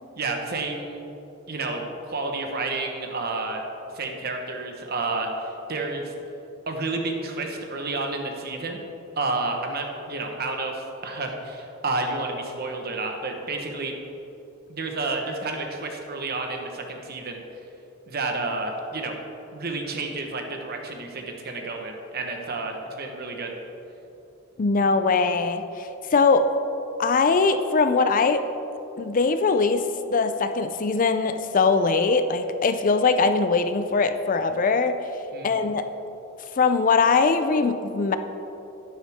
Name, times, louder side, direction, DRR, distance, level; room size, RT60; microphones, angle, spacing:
voice 1, 0.2-1.0 1.5-3.6 3.9-6.1 6.7-8.8 9.2-13.9 14.7-17.4 18.1-19.2 19.5-23.5 35.3-35.6, right 3 dB, 50° right, 3 dB, 1.2 m, -30 dB
voice 2, 24.6-26.5 27.0-28.4 29.0-29.8 30.1-35.0 35.4-35.9 36.6-38.2, left 4 dB, 40° left, 9 dB, 0.4 m, -21 dB
11.5 x 10.0 x 3.6 m, 3.0 s
head